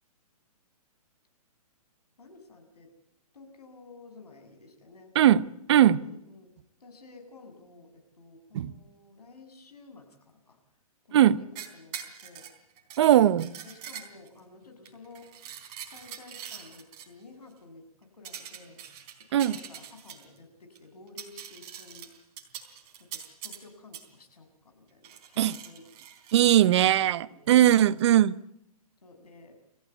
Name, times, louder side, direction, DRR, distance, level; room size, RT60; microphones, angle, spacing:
voice 1, 2.2-2.9 3.3-5.1 5.8-6.5 6.8-10.6 11.0-12.0 12.2-12.5 13.6-15.6 15.9-18.8 19.3-22.1 23.1-25.9 26.5-27.7 29.0-29.5, left 3 dB, 90° left, 6 dB, 7.2 m, -52 dB
voice 2, 5.1-6.0 8.5-8.7 11.1-11.4 13.0-13.5 19.3-19.5 25.4-25.5 26.3-28.3, right 12 dB, 45° right, 16 dB, 1.0 m, -20 dB
sound 1, 11.6-14.4 14.9-17.1 18.3-20.4 20.8-20.9 21.1-23.6 23.9-24.1 25.0-26.6 27.9-28.0, right 9 dB, 30° right, 3.8 m, -43 dB
28.5 x 15.5 x 8.2 m, 0.80 s
hypercardioid pair, 150°, 19 cm